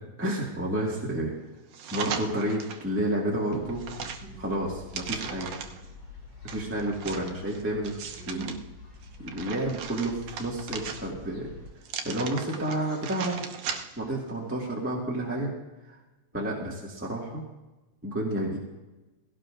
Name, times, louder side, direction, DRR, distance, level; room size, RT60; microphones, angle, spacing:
voice 1, 0.2-1.3 1.9-3.8 4.4-5.5 6.4-7.9 8.3-8.5 9.2-11.5 12.0-13.4 14.0-15.5 15.9-16.0 16.3-17.4 18.0-18.6, right 1 dB, 5° right, -4 dB, 1.3 m, -30 dB
sound 1, 1.7-2.9 3.3-5.9 6.5-8.6 9.0-11.3 11.8-14.1 14.5-14.6, right 6 dB, 65° right, 1.9 m, -38 dB
sound 2, 3.5-11.7, left 3 dB, 60° left, 5.1 m, -47 dB
19.0 x 17.0 x 2.6 m, 1.1 s
omnidirectional pair, 3.3 m